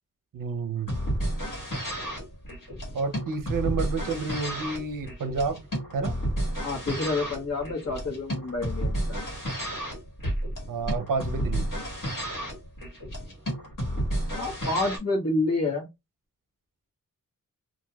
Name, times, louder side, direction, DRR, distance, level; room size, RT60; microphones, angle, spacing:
voice 1, 0.3-1.0 2.9-5.6 5.9-6.2 10.7-11.7, right 4 dB, 65° right, 0.6 m, -30 dB
sound 1, 0.8-15.0, right 1 dB, 65° left, 1.5 m, -31 dB
voice 2, 6.6-9.2 14.3-15.9, left 2 dB, 45° left, 1.2 m, -28 dB
2.9 x 2.5 x 2.2 m
wide cardioid pair, 80°, 35 cm